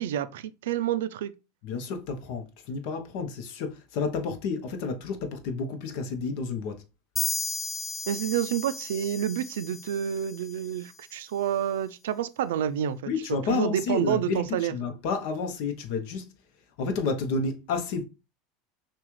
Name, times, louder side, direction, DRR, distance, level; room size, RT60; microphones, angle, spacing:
voice 1, 0.0-1.3 8.1-14.7, right 10 dB, 85° right, 0.4 m, -29 dB
voice 2, 1.6-6.8 13.1-16.3 16.8-18.0, left 4 dB, 65° left, 0.9 m, -30 dB
sound 1, 7.2-10.7, left 4 dB, 15° left, 0.3 m, -34 dB
5.9 x 2.4 x 3.1 m
supercardioid pair, 120°, 0 cm